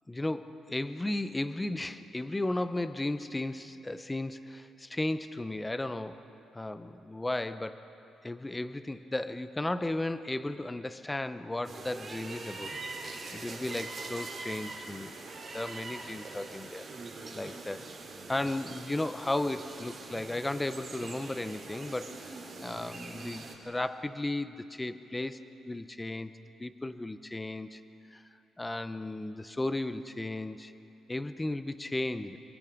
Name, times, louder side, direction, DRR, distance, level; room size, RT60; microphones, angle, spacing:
voice 1, 0.1-6.2 6.5-7.8 8.2-15.2 15.5-16.9 17.3-17.9 18.3-25.4 25.7-26.3 26.6-27.8 28.1-28.2 28.6-30.7 31.1-32.4, left 2 dB, 15° left, 11 dB, 0.8 m, -35 dB
sound 1, 11.6-23.5, right 3 dB, 40° right, 4.6 m, -43 dB
29.5 x 23.5 x 5.3 m, 2.8 s
cardioid pair, 90°, 0 cm